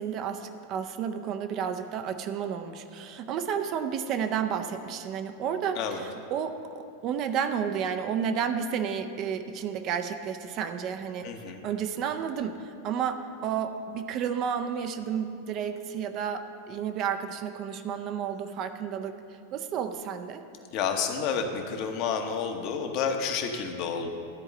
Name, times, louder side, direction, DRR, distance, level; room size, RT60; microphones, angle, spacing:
voice 1, 0.0-11.3 11.6-19.2 19.5-20.4, right 7 dB, 35° right, 7 dB, 0.5 m, -31 dB
voice 2, 11.2-11.6 20.7-24.1, left 6 dB, 40° left, 5 dB, 1.0 m, -30 dB
13.0 x 4.8 x 7.7 m, 2.5 s
figure-of-eight pair, 90°, 0 cm